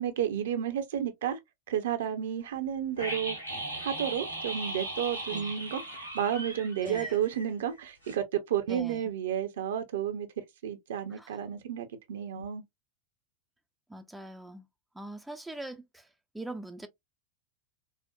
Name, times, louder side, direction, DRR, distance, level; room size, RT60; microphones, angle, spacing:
voice 1, 0.0-1.4 1.7-3.4 3.8-10.3 10.6-12.6, right 9 dB, 60° right, 0.6 m, -32 dB
sound 1, 3.0-8.2, right 1 dB, 90° right, 1.3 m, -38 dB
voice 2, 6.8-7.2 8.7-9.0 11.1-11.3 12.4-12.5 13.9-14.7 14.9-16.1 16.3-16.9, right 2 dB, 5° right, 0.4 m, -42 dB
4.2 x 2.0 x 2.3 m
figure-of-eight pair, 90°, 0 cm